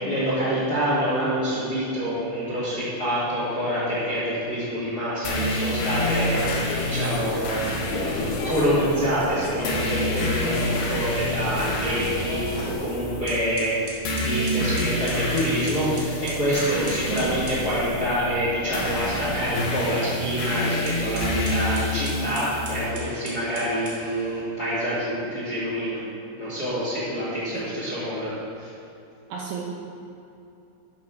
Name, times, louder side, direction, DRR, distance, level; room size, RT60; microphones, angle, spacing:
voice 1, 0.1-7.6 8.0-13.7 14.1-26.0 26.4-28.7, equal, 30° left, -10 dB, 1.8 m, -26 dB
sound 1, 5.2-22.9, left 1 dB, 65° left, 2.3 m, -28 dB
sound 2, 6.0-12.7, left 2 dB, 85° left, 3.8 m, -32 dB
sound 3, 13.3-17.6 20.7-24.4, right 2 dB, 55° right, 1.8 m, -40 dB
voice 2, 29.3-29.6, right 7 dB, 75° right, -2 dB, 3.0 m, -32 dB
11.0 x 5.4 x 6.1 m, 2.8 s
omnidirectional pair, 6.0 m